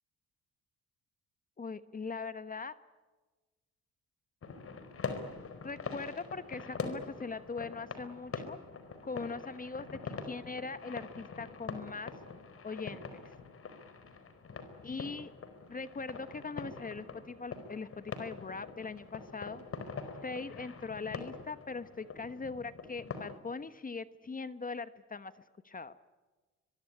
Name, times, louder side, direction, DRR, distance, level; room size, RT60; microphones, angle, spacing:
voice 1, 1.6-2.7 5.6-8.6 9.0-12.1 12.6-13.2 14.8-15.3 15.7-19.6 20.2-25.3 25.6-25.9, left 4 dB, 30° left, 13 dB, 1.2 m, -41 dB
sound 1, 4.4-23.4, left 4 dB, 50° left, 4.5 m, -44 dB
24.0 x 23.0 x 9.8 m, 1.2 s
cardioid pair, 90°, 30 cm